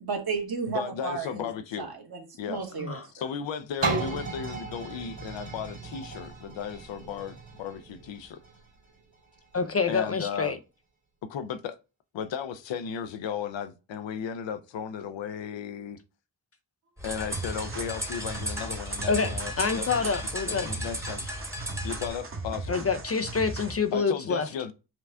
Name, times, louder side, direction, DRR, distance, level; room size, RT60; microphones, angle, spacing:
voice 1, 0.0-1.5 1.8-3.0, right 5 dB, 55° right, 1.5 m, -33 dB
voice 2, 0.7-1.9 2.4-2.6 3.1-8.4 9.9-10.6 11.3-11.8 12.1-16.0 17.0-20.1 20.4-21.3 21.8-22.8 23.9-24.7, left 7 dB, 80° left, 0.6 m, -35 dB
sound 1, 3.8-9.5 10.1-10.2, right 4 dB, 85° right, 1.9 m, -35 dB
voice 3, 9.5-10.6 19.1-20.7 22.7-24.5, left 5 dB, 35° left, 0.4 m, -27 dB
sound 2, 17.0-22.1, equal, 5° right, 1.0 m, -36 dB
sound 3, 17.3-23.9, right 2 dB, 30° right, 1.0 m, -38 dB
5.8 x 2.4 x 3.3 m
cardioid pair, 70°, 44 cm